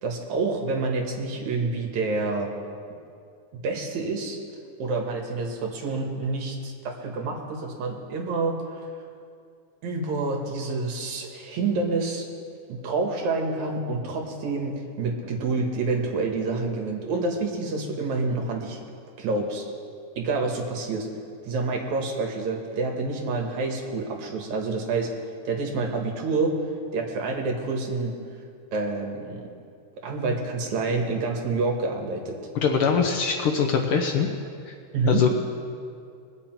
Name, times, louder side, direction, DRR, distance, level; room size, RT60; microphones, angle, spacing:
voice 1, 0.0-2.5 3.6-4.4 4.8-8.5 9.8-12.3 12.7-18.8 19.2-19.6 20.2-21.1 21.4-25.1 25.4-26.6 26.9-28.1 28.7-29.4 30.0-32.4 34.9-35.3, right 3 dB, 70° right, 1 dB, 2.7 m, -28 dB
voice 2, 32.6-34.3 34.7-34.8 35.1-35.3, left 6 dB, 90° left, 3 dB, 1.2 m, -22 dB
22.0 x 8.3 x 4.5 m, 2.4 s
omnidirectional pair, 3.5 m